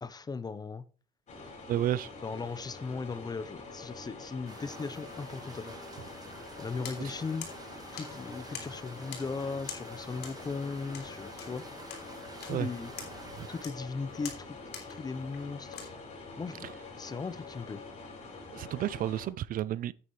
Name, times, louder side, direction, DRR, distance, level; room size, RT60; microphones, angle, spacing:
voice 1, 0.0-0.8 2.2-5.8 6.6-7.5 7.9-11.7 12.4-12.9 13.5-14.6 14.9-15.8 16.4-16.7 16.9-17.8, left 4 dB, 25° left, 0.7 m, -37 dB
sound 1, 1.3-19.3, left 3 dB, 45° left, 5.0 m, -46 dB
voice 2, 1.7-2.1 7.0-7.1 12.5-12.7 13.4-13.5 18.5-19.9, right 12 dB, 55° right, 0.4 m, -31 dB
sound 2, 4.5-13.7, right 3 dB, 20° right, 1.5 m, -50 dB
sound 3, 6.8-15.9, left 7 dB, 70° left, 3.2 m, -48 dB
9.5 x 8.6 x 3.1 m
cardioid pair, 110°, 17 cm